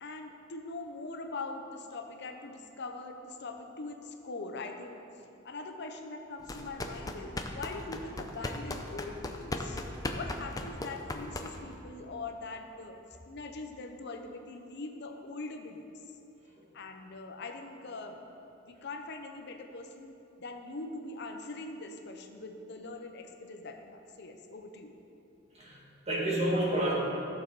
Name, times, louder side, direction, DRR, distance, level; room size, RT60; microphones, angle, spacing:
voice 1, 0.0-5.0 5.4-9.8 10.1-13.0 13.3-15.8 16.7-18.2 18.6-24.9, left 3 dB, 60° left, 5 dB, 0.7 m, -42 dB
sound 1, 6.4-11.8, left 2 dB, 20° left, 0.6 m, -37 dB
voice 2, 25.5-26.9, right 1 dB, 35° right, -4 dB, 2.2 m, -30 dB
14.5 x 6.7 x 4.0 m, 2.8 s
head